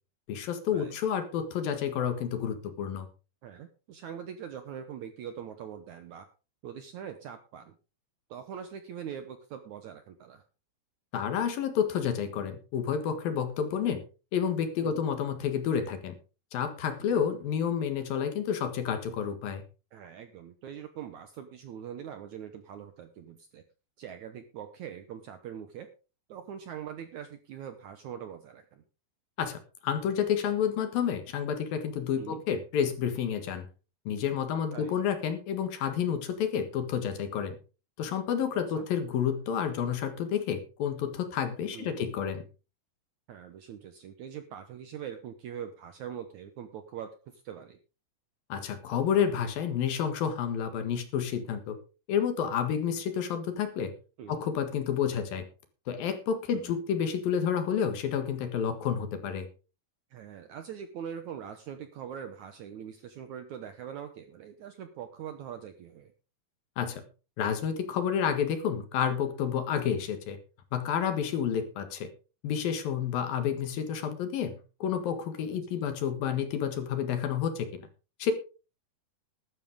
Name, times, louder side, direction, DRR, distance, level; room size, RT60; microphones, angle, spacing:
voice 1, 0.3-3.1 11.1-14.0 14.3-16.1 16.5-19.6 29.4-33.7 34.1-37.6 38.0-42.4 48.5-51.8 52.1-53.9 54.3-55.4 55.9-59.5 66.8-67.0 67.4-70.4 70.7-72.1 72.4-77.8 78.2-78.3, left 8 dB, 70° left, 8 dB, 3.3 m, -30 dB
voice 2, 3.4-6.3 6.6-7.8 8.3-10.4 14.8-15.0 17.1-17.2 19.9-23.6 24.0-25.9 26.3-28.8 32.2-32.4 34.7-35.0 38.5-38.9 41.7-42.1 43.3-47.8 54.2-54.4 56.5-56.7 60.1-66.1 71.3-71.5 75.5-75.9, right 8 dB, 70° right, 8 dB, 1.9 m, -43 dB
14.0 x 12.5 x 3.7 m, 0.33 s
omnidirectional pair, 4.5 m